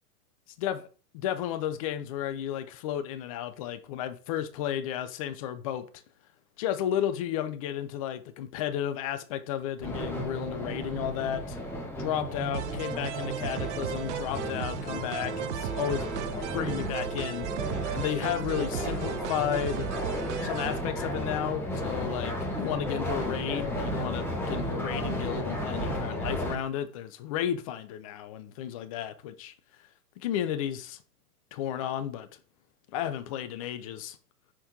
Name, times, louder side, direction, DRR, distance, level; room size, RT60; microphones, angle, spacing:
voice 1, 1.1-5.9 6.6-11.6 12.0-16.1 16.5-17.5 17.9-19.9 20.4-29.5 30.2-31.0 31.5-32.3 32.9-34.2, left 10 dB, 25° left, 0.4 m, -33 dB
sound 1, 9.8-26.5, equal, 5° left, 1.5 m, -34 dB
sound 2, 12.5-20.8, right 12 dB, 50° right, 0.5 m, -36 dB
6.0 x 4.2 x 3.7 m
figure-of-eight pair, 105°, 46 cm